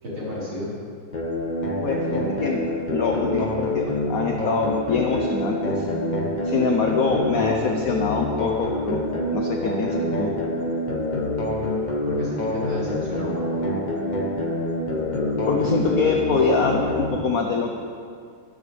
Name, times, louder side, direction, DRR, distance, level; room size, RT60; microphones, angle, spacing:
voice 1, 0.0-0.7 12.1-12.4 12.6-13.8 17.1-17.2, left 1 dB, 85° right, -8 dB, 5.6 m, -32 dB
sound 1, 1.1-17.1, left 1 dB, 35° left, 0.7 m, -26 dB
voice 2, 1.8-2.6 2.9-5.9 6.4-9.0 9.3-10.3 15.4-17.8, left 4 dB, 50° left, 2 dB, 1.3 m, -24 dB
26.0 x 11.5 x 3.5 m, 2.2 s
omnidirectional pair, 2.3 m